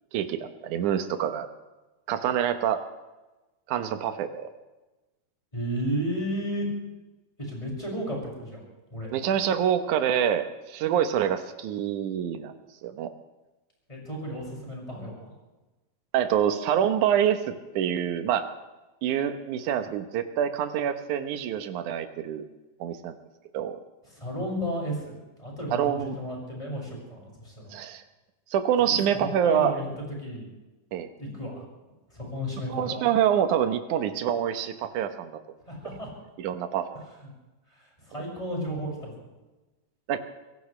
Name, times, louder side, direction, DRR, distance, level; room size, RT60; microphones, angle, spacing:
voice 1, 0.1-1.5 2.1-2.8 3.7-4.5 9.1-12.5 12.8-13.1 16.1-18.5 19.0-22.4 22.8-23.1 23.5-23.8 25.7-26.2 27.7-28.0 28.5-29.7 30.9-31.1 32.7-35.4 36.4-36.9 40.1-40.2, right 9 dB, 65° right, 8 dB, 2.2 m, -26 dB
voice 2, 5.5-6.7 7.4-8.6 8.9-9.1 13.9-15.3 24.1-27.7 28.8-30.5 31.2-31.6 32.1-33.1 35.7-36.1 37.2-37.3 37.7-39.3, equal, 10° left, -3 dB, 6.1 m, -33 dB
25.5 x 17.5 x 3.3 m, 1.1 s
omnidirectional pair, 4.3 m